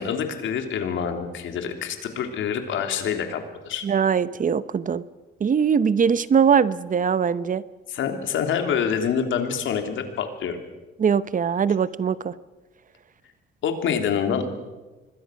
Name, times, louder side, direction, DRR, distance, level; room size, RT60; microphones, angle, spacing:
voice 1, 0.0-3.9 7.9-10.6 13.6-14.5, left 7 dB, 75° left, 6 dB, 3.1 m, -26 dB
voice 2, 3.8-5.0 5.4-7.6 11.0-12.3, right 7 dB, 40° right, 16 dB, 0.8 m, -21 dB
25.5 x 21.0 x 6.3 m, 1.2 s
cardioid pair, 90°, 20 cm